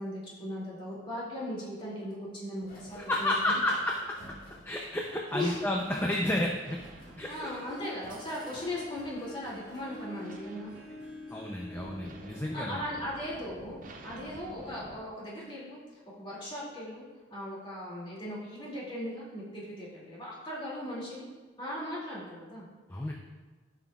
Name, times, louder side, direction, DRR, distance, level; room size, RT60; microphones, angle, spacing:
voice 1, 0.0-3.3 5.3-5.6 7.3-10.7 12.5-15.8 16.2-17.0 17.3-21.3 21.6-22.7, left 1 dB, 30° left, -6 dB, 2.4 m, -38 dB
sound 1, 2.6-10.4, equal, 50° left, 1.8 m, -54 dB
sound 2, 2.6-15.0, right 1 dB, 45° right, 0.6 m, -52 dB
voice 2, 2.9-4.0 4.6-6.8 7.2-7.5 11.3-12.8 22.9-23.1, left 1 dB, 10° left, -1 dB, 0.5 m, -31 dB
Harp, 7.0-14.1, left 2 dB, 85° left, 2.1 m, -48 dB
12.5 x 5.9 x 2.4 m, 1.3 s
head